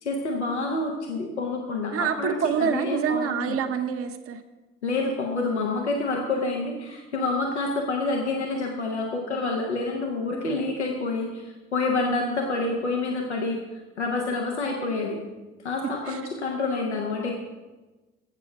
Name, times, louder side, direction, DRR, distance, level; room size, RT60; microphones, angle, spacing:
voice 1, 0.0-3.6 4.8-13.6 14.0-15.2 15.6-17.3, left 3 dB, 85° left, 0 dB, 0.7 m, -28 dB
voice 2, 1.9-4.4 12.0-12.2 16.1-16.2, right 7 dB, 45° right, 5 dB, 0.8 m, -27 dB
7.9 x 6.9 x 5.8 m, 1.2 s
figure-of-eight pair, 50°, 33 cm